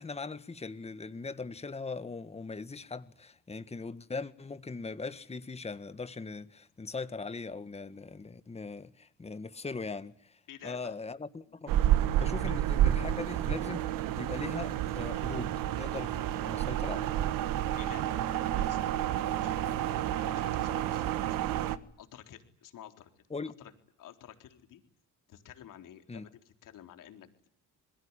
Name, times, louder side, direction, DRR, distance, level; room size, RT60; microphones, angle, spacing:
voice 1, 0.0-13.9 14.1-17.1 23.3-23.6 26.1-26.3, left 4 dB, 20° left, 1.6 m, -40 dB
voice 2, 10.5-11.0 12.4-12.5 17.7-19.6 20.1-21.1 21.4-21.6 22.0-23.1 23.6-23.7 24.0-24.8 25.3-27.5, left 10 dB, 70° left, 3.8 m, -51 dB
sound 1, 11.7-21.8, right 12 dB, 80° right, 1.6 m, -30 dB
27.0 x 21.5 x 9.8 m
cardioid pair, 95°, 33 cm